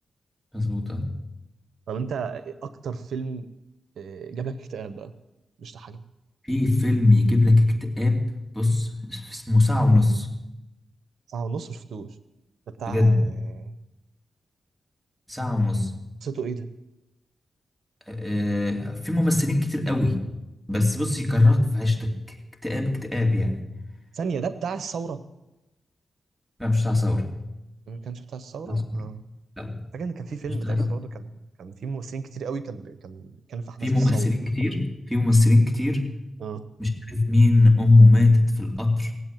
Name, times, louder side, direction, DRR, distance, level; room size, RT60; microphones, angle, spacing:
voice 1, 0.5-1.1 6.4-10.3 12.9-13.2 15.3-15.9 18.1-20.2 20.7-22.4 22.6-23.6 26.6-27.3 28.7-29.0 29.6-29.8 30.5-30.9 33.8-36.1 36.8-39.1, left 2 dB, ahead, 2 dB, 2.8 m, -21 dB
voice 2, 1.9-3.5 4.0-5.1 5.6-6.0 11.3-12.2 12.7-13.7 16.2-16.7 24.1-25.2 27.9-29.2 29.9-31.3 31.6-34.3 36.4-36.6, right 5 dB, 85° right, 13 dB, 0.8 m, -34 dB
18.0 x 8.1 x 9.1 m, 0.96 s
cardioid pair, 80°, 0 cm